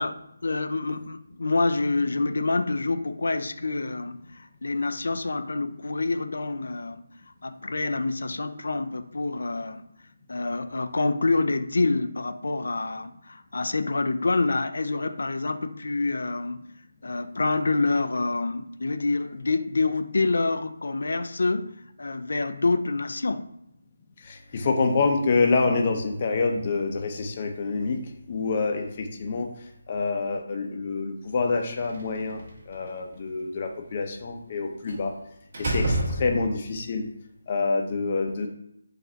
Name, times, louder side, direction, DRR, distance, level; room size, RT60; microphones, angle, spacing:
voice 1, 0.0-7.0 7.4-9.8 10.3-16.6 17.0-23.5, left 3 dB, 75° left, 9 dB, 0.4 m, -27 dB
voice 2, 24.2-28.0 28.3-29.5 29.9-35.1 35.6-37.1 37.5-38.5, left 4 dB, 35° left, 3 dB, 0.7 m, -26 dB
Slam, 31.7-32.7 34.9-35.1 35.5-36.8, right 1 dB, 45° right, 1.7 m, -29 dB
4.8 x 2.6 x 4.4 m, 0.79 s
figure-of-eight pair, 165°, 0 cm